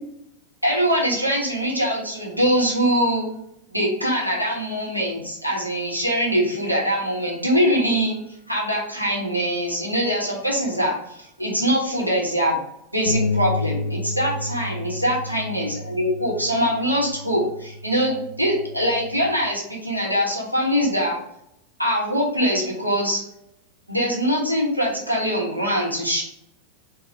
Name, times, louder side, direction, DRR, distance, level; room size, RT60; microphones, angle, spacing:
voice 1, 0.6-3.3 3.7-8.2 8.5-12.6 12.9-21.2 21.8-23.2 23.9-26.2, equal, 90° right, -3 dB, 1.1 m, -23 dB
Bass guitar, 13.1-19.3, left 2 dB, 80° left, 0.4 m, -31 dB
4.0 x 2.4 x 3.3 m, 0.78 s
figure-of-eight pair, 90°, 0 cm